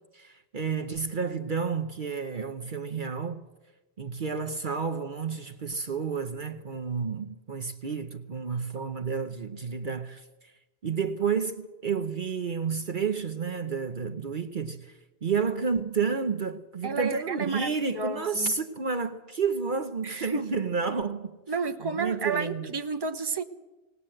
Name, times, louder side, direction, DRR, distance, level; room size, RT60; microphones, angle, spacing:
voice 1, 0.1-3.4 4.0-10.2 10.8-21.4 21.8-22.7, right 5 dB, 50° right, 1.0 m, -30 dB
voice 2, 16.8-18.5 20.0-20.4 21.5-23.4, right 4 dB, 25° right, 1.0 m, -31 dB
19.5 x 19.5 x 7.7 m
omnidirectional pair, 1.1 m